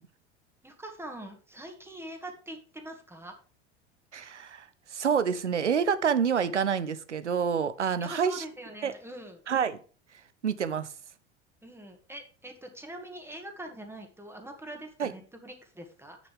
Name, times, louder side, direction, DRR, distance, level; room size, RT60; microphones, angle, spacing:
voice 1, 0.6-3.3 8.0-9.4 11.6-16.2, right 1 dB, 5° right, 2.0 m, -43 dB
voice 2, 4.1-8.4 8.8-8.9 9.5-9.8 10.4-10.9 15.0-15.1, right 7 dB, 85° right, 0.8 m, -27 dB
8.4 x 6.9 x 4.9 m
figure-of-eight pair, 75°, 34 cm